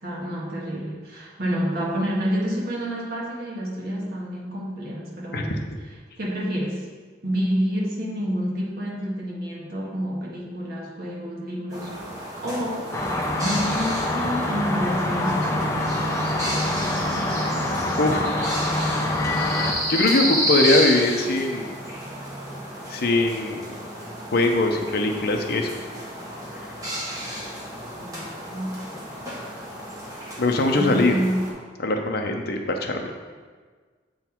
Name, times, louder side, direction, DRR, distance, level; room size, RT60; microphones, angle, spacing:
voice 1, 0.0-5.6 6.2-6.8 7.2-11.9 12.4-12.9 13.3-15.9 28.0-29.0 30.7-31.4, equal, 55° right, -5 dB, 1.6 m, -28 dB
sound 1, 11.7-31.5, equal, 20° right, 1.5 m, -31 dB
sound 2, 12.9-19.7, left 1 dB, 15° left, 0.7 m, -25 dB
voice 2, 17.9-18.4 19.9-21.8 22.9-23.8 24.3-25.7 30.4-31.1 31.8-33.1, left 2 dB, 55° left, 3 dB, 0.7 m, -22 dB
8.0 x 3.9 x 4.5 m, 1.5 s
head